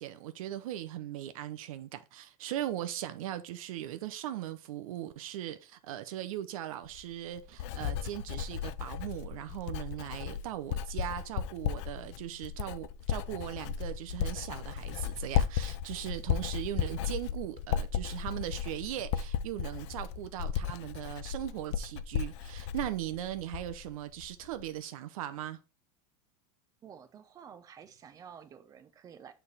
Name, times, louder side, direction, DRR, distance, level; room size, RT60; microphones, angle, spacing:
voice 1, 0.0-25.6, right 12 dB, 75° right, 0.6 m, -39 dB
Writing, 6.9-23.9 24.2-24.6, left 9 dB, 55° left, 0.4 m, -35 dB
voice 2, 26.8-29.3, right 7 dB, 20° right, 0.6 m, -51 dB
6.8 x 3.4 x 4.0 m
supercardioid pair, 155°, 18 cm